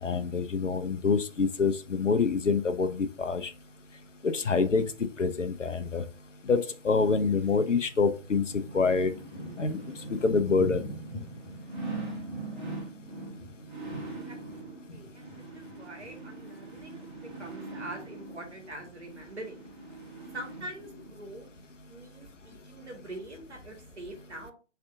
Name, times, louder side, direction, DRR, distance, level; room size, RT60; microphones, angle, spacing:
voice 1, 0.0-3.5 4.2-6.0 6.4-9.1 9.6-9.8 10.1-10.9, left 4 dB, 85° left, 10 dB, 0.7 m, -26 dB
sound 1, 7.2-21.1 21.6-21.7, right 3 dB, 40° right, 1.8 m, -43 dB
Thunder / Rain, 8.4-17.9 18.2-19.0 19.6-19.9 20.2-21.0 21.6-21.7, equal, 30° left, 1.2 m, -44 dB
voice 2, 14.3-19.7 20.3-21.5 21.9-24.5, right 1 dB, 65° right, 3 dB, 1.7 m, -44 dB
3.7 x 3.4 x 3.5 m, 0.34 s
figure-of-eight pair, 145°, 36 cm